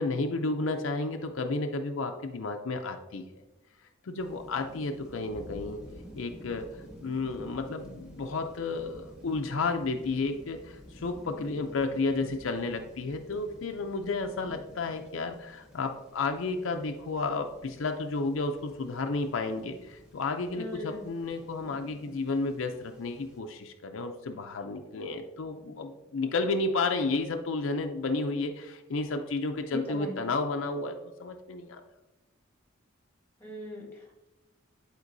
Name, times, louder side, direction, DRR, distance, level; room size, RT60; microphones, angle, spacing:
voice 1, 0.0-3.2 4.0-5.8 6.2-31.8, left 3 dB, 65° left, 5 dB, 0.5 m, -32 dB
sound 1, 4.2-23.4, equal, 5° right, 1.1 m, -51 dB
voice 2, 20.6-21.0 29.7-30.2 33.4-34.3, left 1 dB, 10° left, -1 dB, 1.6 m, -39 dB
11.0 x 4.4 x 2.6 m, 1.0 s
head